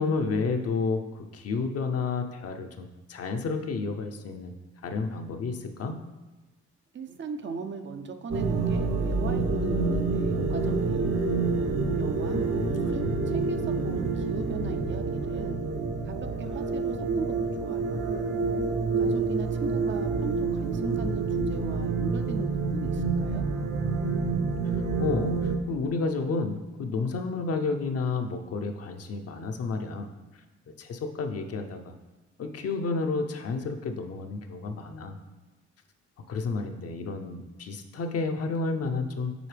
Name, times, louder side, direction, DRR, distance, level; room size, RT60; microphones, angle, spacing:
voice 1, 0.0-4.5 4.8-6.0 12.3-13.2 24.7-30.1 30.8-31.9 32.4-35.2 36.3-39.5, left 4 dB, 55° left, 5 dB, 0.7 m, -31 dB
voice 2, 6.9-11.2 12.0-15.6 16.0-17.3 17.5-18.0 19.0-23.4, right 5 dB, 40° right, 7 dB, 0.5 m, -38 dB
sound 1, 8.3-25.6, right 4 dB, 60° right, 1.0 m, -28 dB
7.7 x 4.4 x 3.3 m, 1.1 s
cardioid pair, 90°, 30 cm